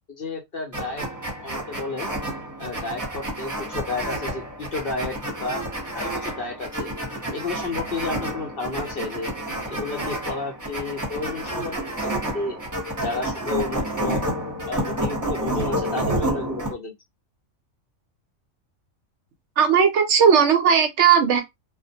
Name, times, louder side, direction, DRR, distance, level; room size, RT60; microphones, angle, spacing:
voice 1, 0.1-1.0 1.4-2.1 2.6-5.6 5.9-6.9 7.3-9.3 9.7-11.7 12.0-12.6 13.0-14.2 14.7-16.9, left 3 dB, 55° left, 0.8 m, -32 dB
sound 1, 0.7-16.7, right 1 dB, 15° right, 0.7 m, -29 dB
voice 2, 19.6-21.4, right 7 dB, 70° right, 0.8 m, -17 dB
2.3 x 2.1 x 2.7 m
omnidirectional pair, 1.4 m